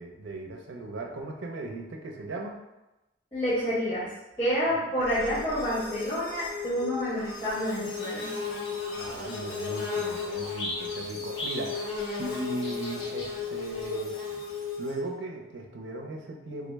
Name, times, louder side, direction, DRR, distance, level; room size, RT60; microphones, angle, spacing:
voice 1, 0.0-2.6 4.7-4.9 9.0-14.2 14.8-16.7, right 2 dB, 85° right, 2 dB, 0.5 m, -37 dB
voice 2, 3.3-4.1 4.4-8.3, equal, 25° left, -13 dB, 1.3 m, -28 dB
sound 1, 5.0-15.0, left 5 dB, 50° left, 0.5 m, -37 dB
Bird / Buzz, 7.2-14.9, left 2 dB, 70° left, 0.9 m, -37 dB
3.5 x 2.0 x 3.3 m, 0.99 s
head